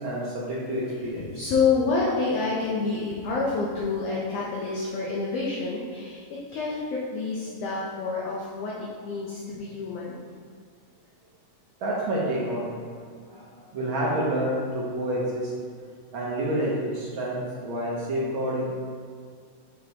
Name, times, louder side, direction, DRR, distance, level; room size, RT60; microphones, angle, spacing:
voice 1, 0.0-1.4 11.8-12.7 13.2-15.5 16.1-18.8, right 1 dB, 75° right, -5 dB, 1.2 m, -28 dB
voice 2, 1.1-10.2, left 4 dB, 70° left, -4 dB, 1.6 m, -28 dB
6.3 x 5.3 x 2.8 m, 2.1 s
omnidirectional pair, 3.3 m